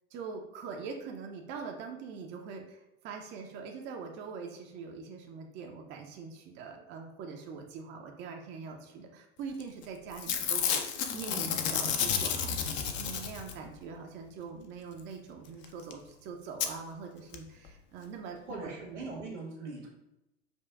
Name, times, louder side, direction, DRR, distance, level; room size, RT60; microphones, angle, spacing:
voice 1, 0.1-18.7, right 5 dB, 35° right, 2 dB, 0.5 m, -43 dB
Packing tape duct tape / Tearing, 9.6-9.8 10.1-13.7 15.6-15.7 15.9-16.0 16.6-16.7 17.3-17.4 17.6-17.7, left 7 dB, 35° left, 0.4 m, -31 dB
voice 2, 18.5-19.9, right 3 dB, 80° right, -2 dB, 1.3 m, -40 dB
5.1 x 2.2 x 2.3 m, 0.90 s
hypercardioid pair, 85°, 34 cm